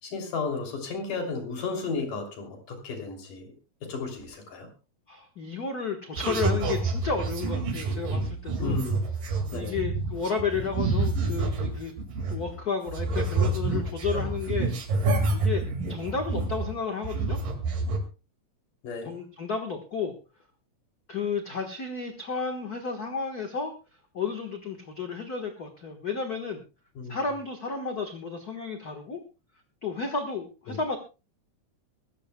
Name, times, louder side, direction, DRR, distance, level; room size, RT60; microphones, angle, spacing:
voice 1, 0.0-3.5 3.9-4.7 8.6-9.1 9.5-9.8 18.8-19.1 27.0-27.2 30.7-30.8, left 4 dB, 75° left, 3 dB, 4.6 m, -33 dB
voice 2, 5.1-8.8 9.5-11.9 12.3-14.7 15.0-17.4 19.0-20.1 21.1-23.7 24.1-26.6 27.1-29.2 29.8-31.0, left 5 dB, 45° left, 4 dB, 1.2 m, -32 dB
sound 1, 6.2-12.6 12.9-16.8 17.0-18.0, right 3 dB, 85° right, 3.8 m, -28 dB
24.0 x 14.5 x 2.2 m, 0.31 s
omnidirectional pair, 3.7 m